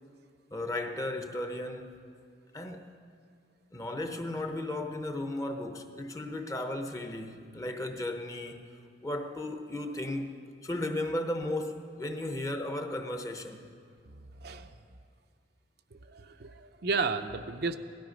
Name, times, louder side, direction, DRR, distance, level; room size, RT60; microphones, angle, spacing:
voice 1, 0.5-2.0 2.5-2.9 3.7-8.7 9.0-13.7, left 1 dB, 20° left, 0.9 m, -35 dB
voice 2, 14.1-14.7 15.9-17.8, right 4 dB, 60° right, 0.6 m, -33 dB
17.0 x 13.0 x 5.2 m
head